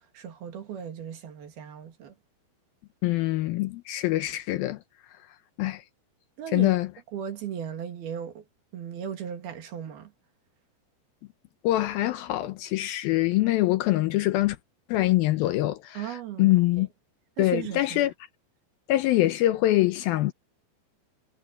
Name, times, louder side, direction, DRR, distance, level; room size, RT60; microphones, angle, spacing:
voice 1, 0.1-2.1 6.4-6.7 7.1-8.4 8.7-10.1 16.0-16.5 17.4-18.1, right 9 dB, 65° right, 4.0 m, -36 dB
voice 2, 3.0-4.8 5.6-5.8 6.5-6.9 11.6-14.6 14.9-16.9 17.4-18.1 18.9-20.3, left 16 dB, 80° left, 2.2 m, -24 dB
omnidirectional pair, 5.0 m